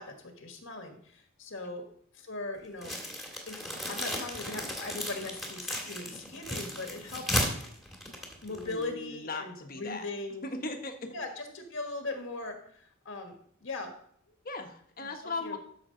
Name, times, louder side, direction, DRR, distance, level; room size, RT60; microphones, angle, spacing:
voice 1, 0.0-1.8 2.1-3.0 3.5-7.4 8.4-10.5 11.1-13.9 15.0-15.6, left 2 dB, 65° left, 4 dB, 1.5 m, -40 dB
sound 1, 2.8-8.9, left 1 dB, ahead, 1.8 m, -35 dB
voice 2, 8.5-10.1 10.4-11.1 14.4-15.6, left 3 dB, 45° left, 5 dB, 1.2 m, -38 dB
12.5 x 6.2 x 3.8 m, 0.62 s
head